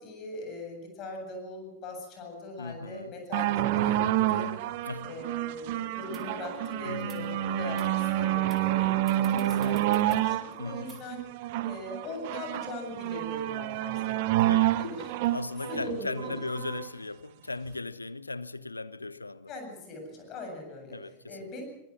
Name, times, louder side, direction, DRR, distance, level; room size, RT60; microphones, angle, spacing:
voice 1, 0.0-4.5 5.0-8.9 9.2-11.3 11.6-14.3 14.8-15.1 15.7-16.3 19.5-21.6, left 2 dB, 35° left, 7.9 m, -40 dB
voice 2, 2.6-3.1 4.9-5.1 6.8-7.4 10.6-11.0 14.5-14.8 15.3-19.5 20.9-21.5, left 3 dB, 80° left, 0.8 m, -38 dB
sound 1, 3.3-16.9 17.7-17.8, right 14 dB, 50° right, 1.0 m, -28 dB
Wind instrument woodwind instrument, 5.9-10.7, left 5 dB, 20° left, 4.3 m, -44 dB
sound 2, 6.1-6.2 7.0-7.2 7.8-7.9 8.5-8.7 9.1-10.2 10.9-11.0, right 7 dB, 25° right, 3.9 m, -50 dB
23.5 x 19.5 x 6.2 m
figure-of-eight pair, 90°, 0 cm